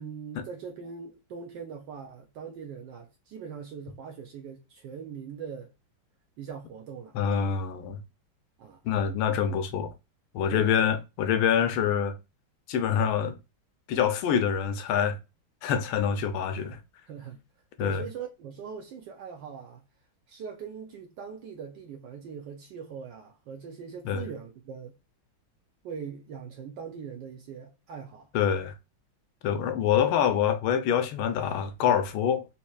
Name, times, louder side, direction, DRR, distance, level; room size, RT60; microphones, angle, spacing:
voice 1, 0.0-5.7 6.4-7.1 8.6-8.8 10.5-10.7 17.1-17.4 17.8-19.8 20.3-25.0 25.8-28.3, right 6 dB, 70° right, 1.2 m, -41 dB
voice 2, 7.1-8.0 8.8-9.9 10.3-12.1 12.7-13.3 13.9-15.2 15.6-16.8 17.8-18.0 24.0-24.2 28.3-28.7 29.4-32.5, left 8 dB, 85° left, 1.4 m, -26 dB
4.2 x 2.9 x 2.3 m
omnidirectional pair, 2.2 m